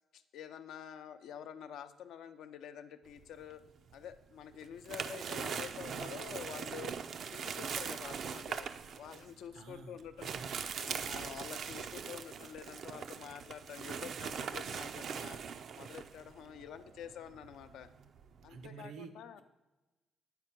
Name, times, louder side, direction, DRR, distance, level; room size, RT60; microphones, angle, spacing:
voice 1, 0.1-3.6 3.9-6.9 7.3-8.7 9.0-10.3 10.7-15.4 15.7-17.9 18.4-19.4, left 9 dB, 80° left, 9 dB, 0.5 m, -48 dB
sound 1, 3.2-4.1 4.5-18.7, right 6 dB, 60° right, 0.4 m, -41 dB
voice 2, 9.5-10.6 18.5-19.4, right 5 dB, 85° right, 8 dB, 0.8 m, -50 dB
8.9 x 4.4 x 5.9 m, 1.1 s
cardioid pair, 90°, 0 cm